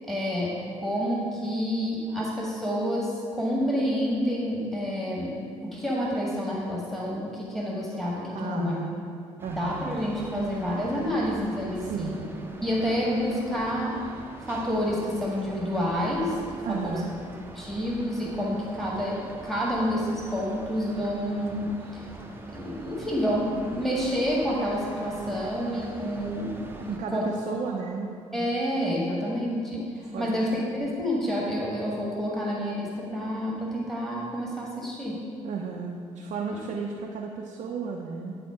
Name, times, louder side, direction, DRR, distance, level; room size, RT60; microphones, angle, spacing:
voice 1, 0.1-0.5 0.8-5.3 5.6-8.8 9.5-12.2 12.6-14.0 14.5-17.0 17.6-22.0 22.5-26.5 26.8-27.3 28.3-29.9 30.2-35.2 36.5-36.6, equal, ahead, -4 dB, 1.7 m, -28 dB
voice 2, 8.3-8.9 9.4-9.9 11.8-12.2 16.6-17.1 26.9-28.1 30.0-30.4 35.4-38.4, right 5 dB, 45° right, 0 dB, 0.6 m, -33 dB
sound 1, 9.4-27.0, right 2 dB, 15° right, 0.8 m, -44 dB
10.0 x 4.2 x 4.8 m, 2.3 s
figure-of-eight pair, 45°, 16 cm